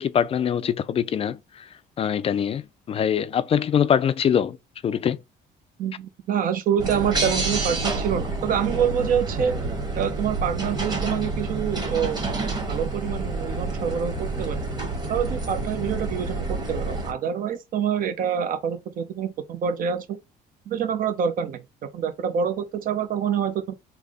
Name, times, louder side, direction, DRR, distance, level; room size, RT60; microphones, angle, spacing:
voice 1, 0.0-1.7 2.0-4.6 4.8-5.2, left 8 dB, 35° left, 0.4 m, -23 dB
voice 2, 5.8-9.6 10.0-14.6 15.1-20.2 20.7-21.6 21.9-23.7, right 8 dB, 55° right, 0.7 m, -26 dB
sound 1, 6.8-17.1, right 3 dB, 25° right, 1.2 m, -28 dB
3.4 x 2.1 x 3.5 m
cardioid pair, 110°, 17 cm